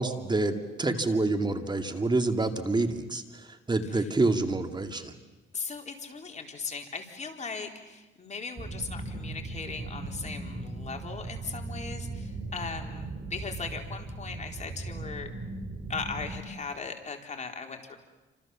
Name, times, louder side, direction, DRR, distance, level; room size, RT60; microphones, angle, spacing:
voice 1, 0.0-3.2 3.7-5.1, right 2 dB, 20° right, 7 dB, 2.3 m, -27 dB
voice 2, 5.5-15.3 15.9-18.0, left 5 dB, 35° left, 3 dB, 4.2 m, -38 dB
sound 1, 8.6-16.4, right 2 dB, 40° right, 3.4 m, -38 dB
28.5 x 26.5 x 7.3 m, 1.2 s
cardioid pair, 90°, 20 cm